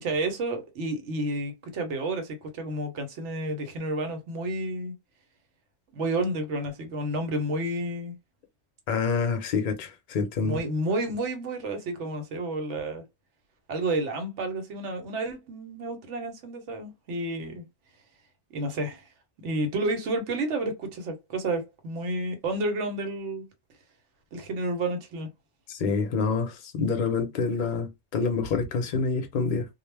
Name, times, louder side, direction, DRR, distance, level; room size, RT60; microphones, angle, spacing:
voice 1, 0.0-4.9 5.9-8.2 10.4-13.0 13.7-17.6 18.5-19.0 19.4-23.5 24.3-25.3, right 2 dB, 85° right, 1.1 m, -30 dB
voice 2, 8.9-10.6 25.7-29.7, left 4 dB, 50° left, 0.6 m, -27 dB
2.3 x 2.1 x 3.2 m
omnidirectional pair, 1.2 m